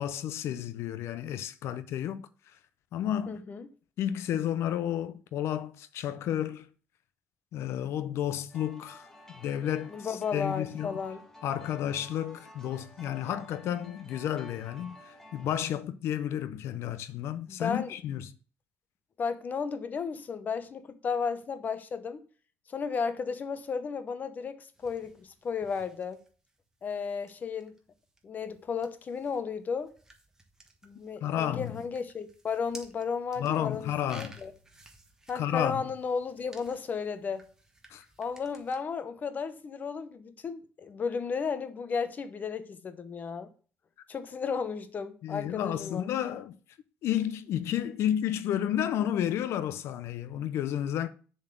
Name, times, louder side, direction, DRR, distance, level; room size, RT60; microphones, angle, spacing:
voice 1, 0.0-2.2 2.9-3.4 4.0-6.7 7.5-11.0 11.4-18.3 31.2-31.8 33.4-34.4 35.3-35.8 37.9-38.0 45.2-46.6 47.0-51.1, left 10 dB, 70° left, 0.5 m, -31 dB
voice 2, 3.3-3.7 9.9-11.2 17.5-17.9 19.2-22.2 22.7-26.2 26.8-27.7 28.2-29.9 30.8-34.5 35.3-37.5 38.2-43.5 44.1-46.1, left 5 dB, 40° left, 0.8 m, -34 dB
sound 1, 8.5-15.6, left 1 dB, 10° left, 1.4 m, -52 dB
sound 2, 24.7-38.8, right 2 dB, 10° right, 1.3 m, -56 dB
7.1 x 4.0 x 6.7 m
cardioid pair, 115°, 5 cm